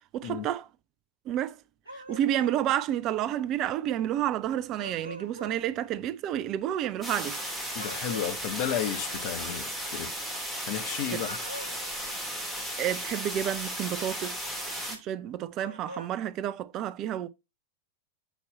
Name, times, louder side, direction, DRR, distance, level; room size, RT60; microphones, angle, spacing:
voice 1, 0.1-0.7 1.3-1.6 1.9-7.4 12.8-14.4 14.9-17.3, right 11 dB, 35° right, 0.5 m, -30 dB
sound 1, 1.8-2.6 4.8-5.6 7.8-8.4 11.1-11.9 15.5-16.1, equal, 90° right, 1.2 m, -43 dB
sound 2, 7.0-15.0, equal, 5° left, 2.3 m, -35 dB
voice 2, 7.7-10.1 10.7-11.4, left 9 dB, 50° left, 1.1 m, -33 dB
7.2 x 4.5 x 4.1 m
figure-of-eight pair, 90°, 0 cm